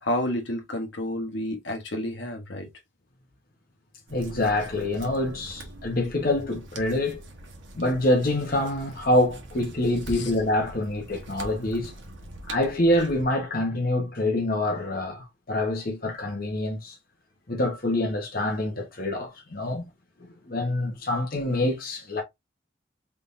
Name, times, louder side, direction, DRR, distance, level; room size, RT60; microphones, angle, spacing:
voice 1, 0.0-2.7 10.1-10.3, left 1 dB, 70° left, 1.2 m, -30 dB
voice 2, 4.1-7.2 7.7-11.9 12.5-17.0 17.5-19.9 20.5-22.2, left 1 dB, 50° left, 1.0 m, -26 dB
sound 1, 4.1-13.3, right 1 dB, 85° right, 1.1 m, -43 dB
3.8 x 3.4 x 2.5 m
head